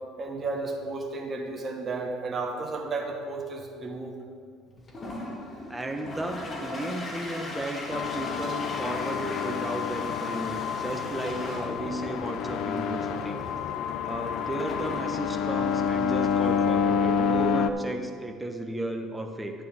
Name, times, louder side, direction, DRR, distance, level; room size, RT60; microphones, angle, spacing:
voice 1, 0.2-4.1, right 3 dB, 35° right, 2 dB, 1.3 m, -33 dB
Toilet flush, 4.7-17.9, left 1 dB, 35° left, 2.1 m, -40 dB
voice 2, 5.7-13.4 14.0-19.5, right 1 dB, 10° right, 4 dB, 1.1 m, -34 dB
sound 1, 7.9-17.7, left 7 dB, 65° left, 0.4 m, -28 dB
10.5 x 9.1 x 3.6 m, 2.2 s
supercardioid pair, 75°, 0 cm